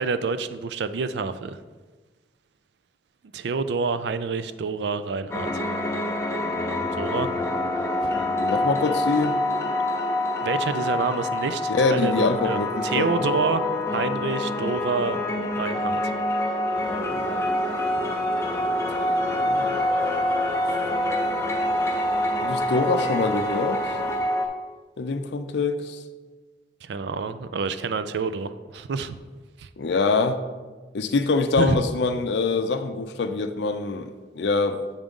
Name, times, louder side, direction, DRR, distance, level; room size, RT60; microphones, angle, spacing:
voice 1, 0.0-1.6 3.3-5.6 7.0-7.3 10.4-15.2 15.5-16.1 26.8-29.2 29.6-29.7 31.6-31.8, right 4 dB, 80° right, 12 dB, 0.4 m, -28 dB
sound 1, 5.3-24.5, left 1 dB, 15° left, 0.6 m, -26 dB
voice 2, 8.4-9.4 11.7-13.3 19.3-19.8 22.4-23.8 25.0-26.0 29.8-30.4 30.9-34.8, left 3 dB, 80° left, 8 dB, 0.5 m, -24 dB
sound 2, 16.7-24.2, left 1 dB, 35° left, 0.9 m, -40 dB
7.3 x 3.7 x 5.2 m, 1.3 s
head